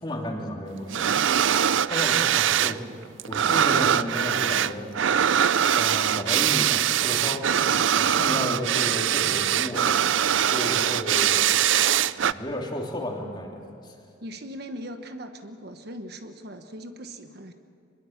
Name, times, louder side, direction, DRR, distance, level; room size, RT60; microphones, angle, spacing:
voice 1, 0.0-1.1 1.9-2.8 3.3-4.9 5.8-7.6 7.9-9.9 10.5-11.5 12.2-13.9, left 1 dB, 20° left, 0 dB, 2.9 m, -33 dB
sound 1, 0.9-2.8 3.0-12.3, right 9 dB, 70° right, 0.5 m, -22 dB
voice 2, 14.2-17.5, equal, 50° right, 7 dB, 1.1 m, -39 dB
25.0 x 21.5 x 7.2 m, 2.5 s
head